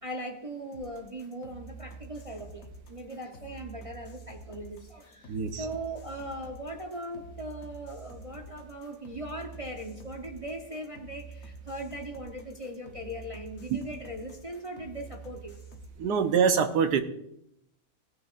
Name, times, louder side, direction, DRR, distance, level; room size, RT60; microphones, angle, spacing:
voice 1, 0.0-15.5, right 1 dB, 25° right, 3 dB, 0.8 m, -39 dB
sound 1, 0.7-15.9, right 3 dB, 55° left, 1.5 m, -47 dB
voice 2, 5.3-5.6 13.7-13.8 16.0-17.0, right 6 dB, 75° right, 8 dB, 1.4 m, -24 dB
18.0 x 9.7 x 2.5 m, 0.78 s
omnidirectional pair, 1.8 m